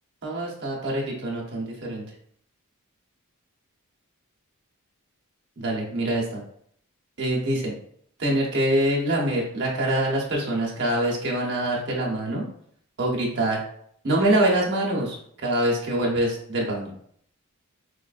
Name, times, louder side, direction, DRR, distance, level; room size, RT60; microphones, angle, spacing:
voice 1, 0.2-2.0 5.6-6.4 7.2-7.7 8.2-12.5 13.0-13.6 14.0-16.9, right 1 dB, 55° right, -3 dB, 1.1 m, -25 dB
4.9 x 2.4 x 2.5 m, 0.65 s
head